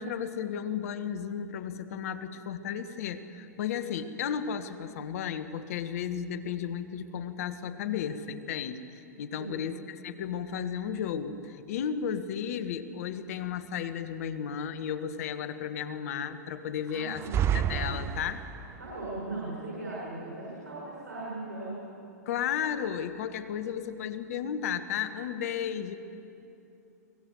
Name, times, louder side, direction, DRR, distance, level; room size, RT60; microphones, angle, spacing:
voice 1, 0.0-8.8 9.2-17.2 17.5-18.4 22.2-26.0, left 8 dB, 60° left, 11 dB, 1.4 m, -34 dB
voice 2, 16.9-17.4 18.8-21.7, right 2 dB, 85° right, -6 dB, 6.5 m, -38 dB
sound 1, 17.1-18.8, right 9 dB, 30° right, 0.7 m, -29 dB
23.5 x 19.5 x 7.9 m, 2.8 s
hypercardioid pair, 105°, 9 cm